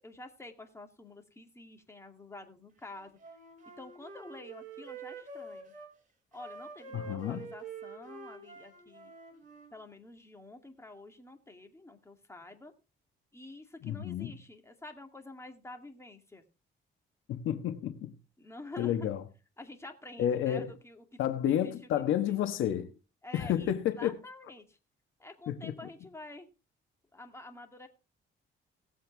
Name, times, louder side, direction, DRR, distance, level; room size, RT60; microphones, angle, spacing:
voice 1, 0.0-3.2 3.8-5.7 6.3-9.1 9.7-12.7 13.3-16.4 18.4-19.1 19.6-21.2 21.5-22.4 23.2-24.8 25.2-26.5 27.1-27.9, left 2 dB, 15° left, 2.5 m, -49 dB
Wind instrument woodwind instrument, 2.9-5.9 6.3-9.7, right 4 dB, 40° right, 5.5 m, -47 dB
voice 2, 6.9-7.5 13.8-14.3 17.3-18.1 18.8-19.2 20.2-20.7 21.2-22.9 23.3-24.2 25.5-25.7, left 10 dB, 85° left, 1.3 m, -30 dB
18.5 x 7.9 x 3.4 m
cardioid pair, 90°, 20 cm